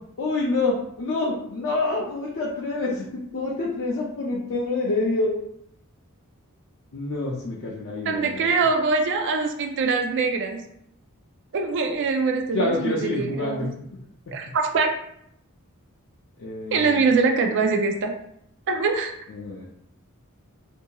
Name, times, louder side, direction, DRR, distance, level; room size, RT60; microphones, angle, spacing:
voice 1, 0.2-5.3 6.9-8.5 12.5-13.7 16.4-17.0 19.3-19.7, left 2 dB, 55° left, -4 dB, 0.5 m, -27 dB
voice 2, 8.1-10.6 11.5-13.7 14.3-14.9 16.7-18.1 18.7-19.1, right 4 dB, 55° right, 4 dB, 0.4 m, -23 dB
2.7 x 2.6 x 2.2 m, 0.72 s
head